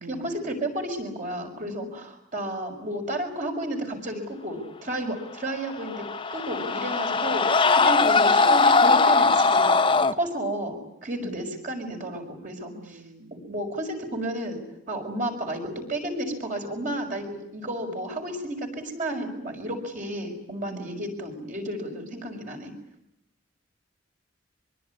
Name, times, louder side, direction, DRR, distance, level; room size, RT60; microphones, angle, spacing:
voice 1, 0.1-9.8 10.2-13.0 13.3-14.6 14.9-22.7, right 1 dB, 45° right, 3 dB, 6.3 m, -32 dB
sound 1, 5.7-10.1, left 4 dB, 25° left, 1.0 m, -20 dB
voice 2, 12.8-13.3 20.7-21.0, right 3 dB, 80° right, 6 dB, 2.8 m, -43 dB
24.5 x 23.5 x 9.7 m, 0.79 s
head